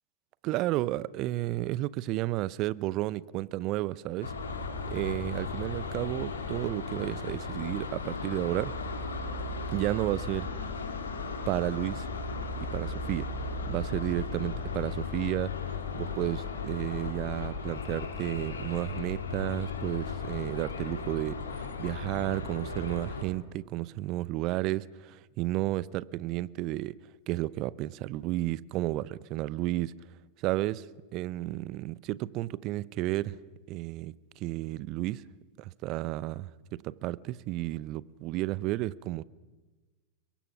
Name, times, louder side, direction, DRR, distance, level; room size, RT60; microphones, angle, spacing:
voice 1, 0.4-4.3 4.9-8.7 9.7-10.5 11.5-12.1 12.7-13.3 13.7-15.5 15.9-26.9 27.3-29.9 30.4-30.9 31.1-33.4 33.7-35.2 35.6-39.2, right 17 dB, 40° right, 20 dB, 0.8 m, -32 dB
sound 1, 4.2-23.2, left 4 dB, 70° left, 3.6 m, -36 dB
30.0 x 22.5 x 6.0 m, 1.3 s
figure-of-eight pair, 90°, 0 cm